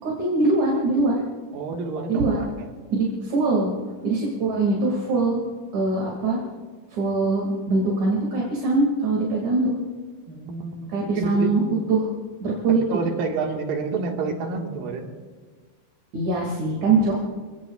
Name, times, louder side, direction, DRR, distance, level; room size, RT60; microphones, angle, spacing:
voice 1, 0.0-1.2 2.1-2.4 2.9-3.7 4.0-5.4 5.7-6.4 6.9-9.8 10.9-11.6 11.9-12.1 12.4-12.8 16.1-17.2, right 3 dB, 60° right, -3 dB, 3.6 m, -22 dB
voice 2, 1.5-2.7 10.3-11.7 12.7-15.1, right 4 dB, 85° right, 1 dB, 3.4 m, -29 dB
27.5 x 18.5 x 2.4 m, 1.5 s
omnidirectional pair, 3.9 m